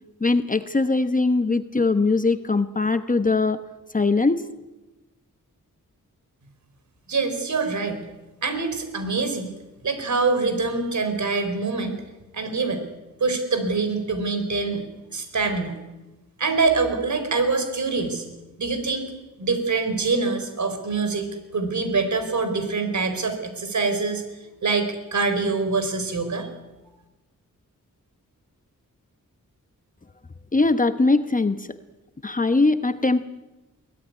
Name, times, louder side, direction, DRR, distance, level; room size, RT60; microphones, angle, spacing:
voice 1, 0.2-3.6 3.9-4.4 30.5-31.7 32.2-33.2, left 3 dB, 25° left, 10 dB, 1.0 m, -21 dB
voice 2, 7.1-8.0 8.4-9.5 9.8-12.0 12.3-12.8 13.2-14.8 15.1-15.8 16.4-18.2 18.6-19.1 19.4-21.3 21.5-24.2 24.6-26.5, right 4 dB, 60° right, 8 dB, 4.6 m, -24 dB
23.5 x 17.5 x 9.7 m, 1.1 s
wide cardioid pair, 115°, 32 cm